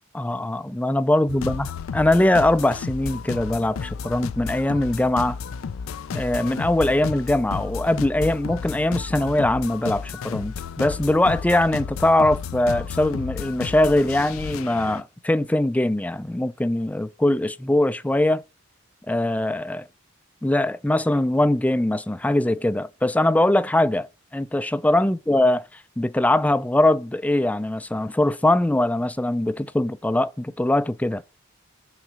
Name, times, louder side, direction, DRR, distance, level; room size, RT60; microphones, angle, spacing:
voice 1, 0.1-5.4 6.1-18.4 19.1-19.8 20.4-24.1 24.3-31.2, left 1 dB, 5° left, 0.3 m, -22 dB
sound 1, 1.3-15.0, left 6 dB, 85° left, 0.4 m, -33 dB
6.1 x 4.1 x 6.1 m
head